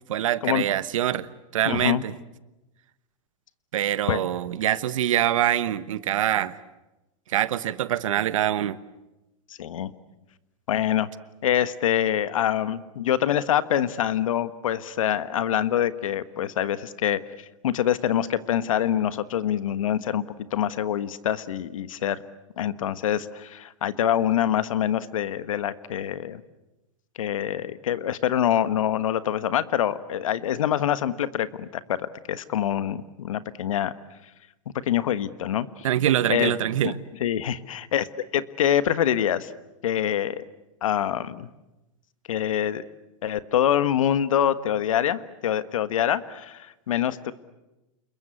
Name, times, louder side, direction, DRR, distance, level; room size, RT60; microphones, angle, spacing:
voice 1, 0.1-2.1 3.7-6.6 7.3-8.8 35.8-37.0, right 11 dB, 80° right, 15 dB, 1.2 m, -24 dB
voice 2, 1.6-2.0 4.1-4.2 9.6-9.9 10.7-11.1 11.4-17.2 17.6-20.2 20.5-22.2 22.6-26.4 27.2-33.9 34.9-35.9 36.3-36.5 36.8-36.9 37.2-38.1 38.3-39.5 39.8-40.4 40.8-41.5 42.3-42.9 43.2-47.3, left 10 dB, 85° left, 14 dB, 1.4 m, -25 dB
28.0 x 22.0 x 8.5 m, 1.0 s
hypercardioid pair, 125°, 17 cm